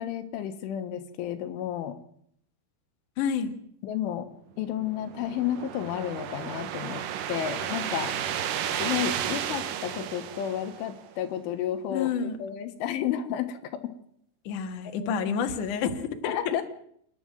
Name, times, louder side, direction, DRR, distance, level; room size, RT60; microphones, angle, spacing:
voice 1, 0.0-2.0 3.8-4.3 4.6-8.1 8.8-13.8 15.0-15.1 16.2-16.6, left 10 dB, 80° left, 9 dB, 3.7 m, -32 dB
voice 2, 3.2-3.5 11.9-12.4 14.4-16.4, left 7 dB, 55° left, 6 dB, 2.5 m, -29 dB
sound 1, 4.7-11.2, right 9 dB, 75° right, 2.0 m, -33 dB
28.0 x 11.0 x 9.2 m, 0.68 s
omnidirectional pair, 5.6 m